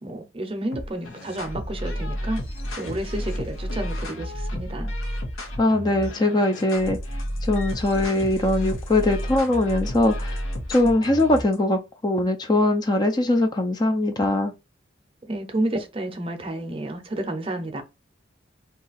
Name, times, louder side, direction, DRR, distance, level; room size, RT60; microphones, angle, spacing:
voice 1, 0.0-2.4 2.7-4.9 15.2-17.8, right 1 dB, 30° right, 0.6 m, -30 dB
sound 1, 0.7-11.6, equal, 90° left, 0.9 m, -31 dB
voice 2, 5.6-7.0 7.5-10.4 10.7-14.5, left 2 dB, 20° left, 0.4 m, -21 dB
2.8 x 2.4 x 3.9 m
head